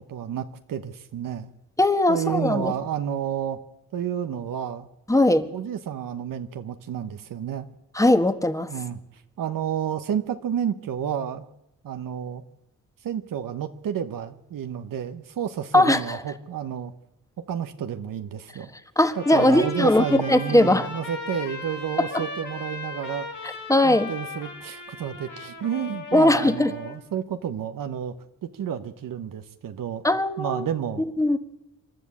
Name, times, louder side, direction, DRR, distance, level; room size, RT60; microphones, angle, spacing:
voice 1, 0.0-1.5 2.1-3.6 3.9-4.9 5.5-7.7 8.7-9.0 9.4-11.4 11.8-12.4 13.0-16.9 17.5-18.7 19.1-23.3 23.8-28.1 28.4-30.0 30.4-31.0, right 9 dB, 80° right, 8 dB, 1.1 m, -30 dB
voice 2, 1.8-2.7 5.1-5.5 7.9-8.7 15.7-16.2 19.0-20.9 22.1-22.2 23.7-24.1 26.1-26.7 30.0-30.7 31.0-31.4, left 1 dB, 10° left, 9 dB, 1.5 m, -20 dB
Trumpet, 19.1-27.0, left 3 dB, 60° left, 5.0 m, -37 dB
27.0 x 12.0 x 8.4 m, 0.93 s
cardioid pair, 80°, 32 cm